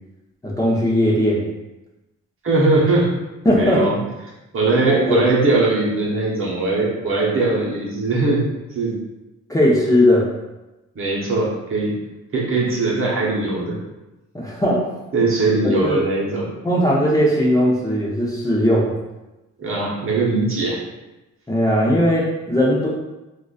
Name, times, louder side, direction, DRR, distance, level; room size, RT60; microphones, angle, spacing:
voice 1, 0.4-1.5 3.4-3.9 4.8-5.2 9.5-10.2 14.3-14.8 15.8-16.0 16.6-19.0 21.5-22.9, equal, 10° left, -6 dB, 0.8 m, -18 dB
voice 2, 2.4-3.1 3.5-4.0 4.5-8.5 8.7-9.0 10.9-11.9 12.3-13.8 15.1-16.5 19.6-20.8, right 3 dB, 45° right, -4 dB, 0.9 m, -20 dB
3.7 x 2.5 x 2.4 m, 1.0 s
cardioid pair, 90°, 30 cm